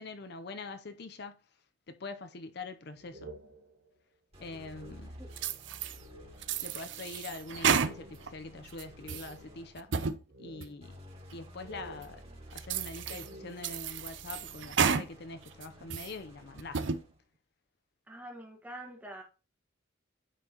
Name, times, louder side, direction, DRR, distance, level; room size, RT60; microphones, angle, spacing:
voice 1, 0.0-1.4 1.9-3.4 4.4-5.2 6.6-10.0 10.4-11.0 11.3-12.2 12.5-16.8, left 3 dB, 55° left, 0.6 m, -44 dB
sound 1, 3.0-5.4 5.9-6.7 7.1-7.2 7.6-9.8 10.3-11.3 11.6-14.0, right 1 dB, 90° right, 1.0 m, -52 dB
sound 2, 4.3-9.9 10.8-17.2, equal, 30° right, 2.4 m, -52 dB
sound 3, 5.4-6.0 6.4-8.3 8.7-9.3 9.8-10.2 10.6-10.7 11.3-11.4 12.0-12.1 12.6-13.3 13.6-15.1 15.5-16.1 16.6-17.0, right 6 dB, 70° right, 0.6 m, -32 dB
voice 2, 18.1-19.2, right 1 dB, 10° right, 1.4 m, -45 dB
9.8 x 4.5 x 2.9 m
head